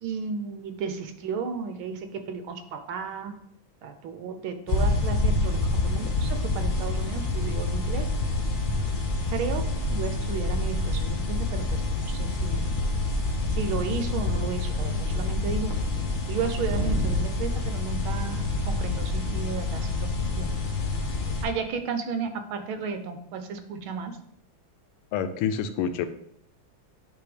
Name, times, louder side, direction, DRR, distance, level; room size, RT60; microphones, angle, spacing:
voice 1, 0.0-3.4 3.8-8.1 9.3-12.7 13.5-15.7 16.3-20.5 21.4-24.2, right 5 dB, 75° right, 7 dB, 1.6 m, -33 dB
sound 1, 4.7-21.4, left 3 dB, 45° left, 0.6 m, -28 dB
sound 2, 5.2-19.3, right 2 dB, 55° right, 2.8 m, -35 dB
voice 2, 25.1-26.1, left 7 dB, 85° left, 10 dB, 1.6 m, -27 dB
9.6 x 3.4 x 5.0 m, 0.73 s
omnidirectional pair, 2.4 m